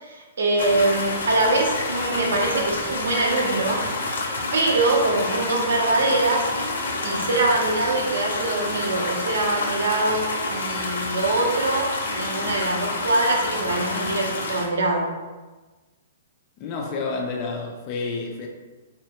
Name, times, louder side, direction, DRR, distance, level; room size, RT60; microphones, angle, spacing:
voice 1, 0.0-3.8 4.5-6.5 7.0-15.1, right 2 dB, 80° right, 0 dB, 0.7 m, -23 dB
sound 1, 0.6-14.7, left 2 dB, 80° left, 0.6 m, -28 dB
voice 2, 16.6-18.5, left 4 dB, 20° left, 1 dB, 0.3 m, -29 dB
3.5 x 2.1 x 2.8 m, 1.2 s
hypercardioid pair, 175°, 0 cm